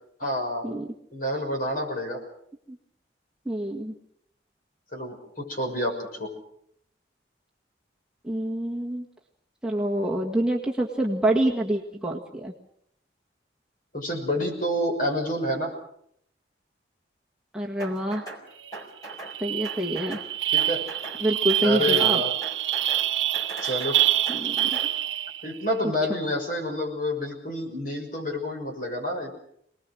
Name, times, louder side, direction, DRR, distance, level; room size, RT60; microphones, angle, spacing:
voice 1, 0.2-0.6 1.1-2.2 4.9-6.3 13.9-15.7 20.5-20.8 21.6-22.3 23.6-24.0 25.4-29.3, left 1 dB, 45° left, 2 dB, 6.3 m, -28 dB
voice 2, 3.4-3.9 8.2-9.0 9.6-12.5 17.5-18.2 19.4-20.2 21.2-22.2 24.3-24.7, right 1 dB, 5° right, -2 dB, 1.7 m, -26 dB
sound 1, 17.8-18.4 18.7-19.4 19.6-20.3 20.6-21.2 21.5-22.1 22.4-23.1 23.3-24.9, right 2 dB, 20° left, 4.6 m, -40 dB
sound 2, 18.7-18.8 19.1-25.5, right 12 dB, 85° right, 0.9 m, -26 dB
27.0 x 20.0 x 6.4 m, 0.71 s
head